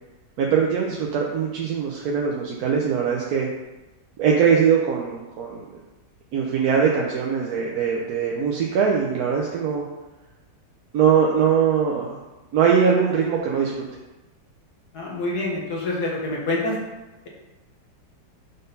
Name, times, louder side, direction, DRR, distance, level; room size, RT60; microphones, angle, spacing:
voice 1, 0.4-3.5 4.2-5.6 6.3-9.8 10.9-12.2 12.5-13.7, right 7 dB, 65° right, -1 dB, 1.0 m, -21 dB
voice 2, 14.9-16.8, left 2 dB, 60° left, -3 dB, 1.9 m, -26 dB
5.3 x 4.0 x 5.3 m, 1.1 s
omnidirectional pair, 2.0 m